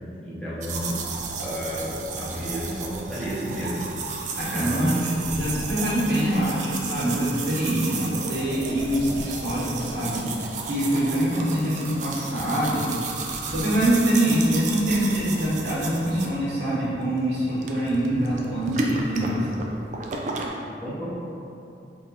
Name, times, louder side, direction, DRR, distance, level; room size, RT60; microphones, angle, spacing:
voice 1, 0.2-1.0 1.4-3.9 4.4-5.1 20.8-21.1, equal, 5° left, -10 dB, 0.7 m, -31 dB
sound 1, 0.6-20.5, right 4 dB, 40° right, 0.3 m, -33 dB
voice 2, 4.4-10.2 10.6-12.9 13.5-19.5, right 1 dB, 75° right, -9 dB, 1.4 m, -24 dB
3.7 x 2.4 x 4.1 m, 2.7 s
head